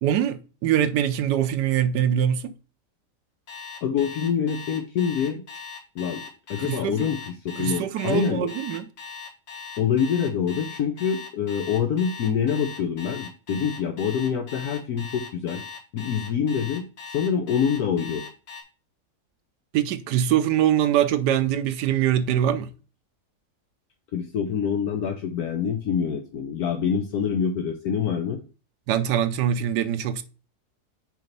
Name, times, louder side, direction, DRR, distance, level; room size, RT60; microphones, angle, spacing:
voice 1, 0.0-2.5 6.6-7.0 7.6-8.8 19.7-22.7 28.9-30.2, right 10 dB, 85° right, 1.3 m, -23 dB
Alarm, 3.5-18.6, left 5 dB, 90° left, 2.2 m, -39 dB
voice 2, 3.8-5.4 5.9-6.2 6.5-8.5 9.8-15.6 15.9-16.9 17.1-18.2 24.1-28.4, left 7 dB, 70° left, 1.2 m, -26 dB
5.0 x 4.6 x 5.2 m
omnidirectional pair, 1.7 m